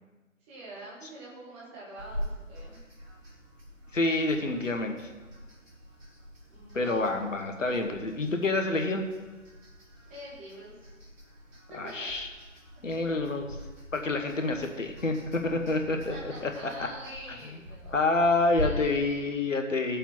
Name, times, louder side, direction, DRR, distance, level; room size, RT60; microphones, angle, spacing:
voice 1, 0.5-2.8 6.5-7.0 10.0-10.9 11.7-12.1 15.9-18.3 18.6-19.2, right 1 dB, 10° right, -5 dB, 1.2 m, -46 dB
sound 1, 2.0-18.6, equal, 70° right, 3.1 m, -44 dB
voice 2, 3.9-5.1 6.7-9.0 11.7-12.3 12.8-13.5 13.9-16.1 16.4-16.5 17.9-20.0, left 2 dB, 70° left, 4 dB, 1.2 m, -28 dB
16.5 x 7.1 x 2.9 m, 1.2 s
figure-of-eight pair, 150°, 40 cm